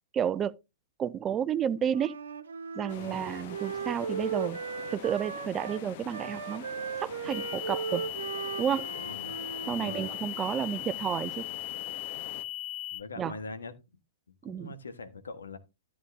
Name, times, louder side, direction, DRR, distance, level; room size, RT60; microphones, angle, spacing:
voice 1, 0.1-0.5 1.0-2.2 2.7-4.6 4.9-6.7 7.0-8.1 8.6-8.9 9.7-11.5 13.2-13.3 14.4-14.7, right 8 dB, 25° right, 0.4 m, -31 dB
Wind instrument woodwind instrument, 1.9-10.2, right 6 dB, 75° right, 1.0 m, -37 dB
sound 1, 2.9-12.4, left 10 dB, 50° left, 1.0 m, -46 dB
voice 2, 3.0-3.3 9.0-9.3 9.7-10.1 12.1-12.3 12.9-13.7 14.3-15.6, left 3 dB, 75° left, 1.4 m, -43 dB
sound 2, 7.3-13.0, left 14 dB, 35° left, 1.4 m, -38 dB
13.0 x 8.5 x 2.7 m
figure-of-eight pair, 110°, 0 cm